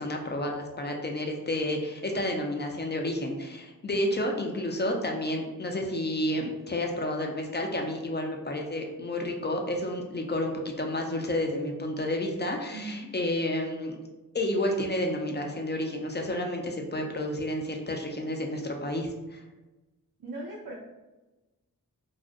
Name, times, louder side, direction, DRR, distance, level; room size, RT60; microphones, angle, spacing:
voice 1, 0.0-14.0 14.3-19.4, left 1 dB, 30° left, 2 dB, 0.4 m, -30 dB
voice 2, 12.7-13.1 20.2-20.7, right 2 dB, 75° right, -3 dB, 0.5 m, -38 dB
2.4 x 2.0 x 2.5 m, 1.1 s
cardioid pair, 40°, 36 cm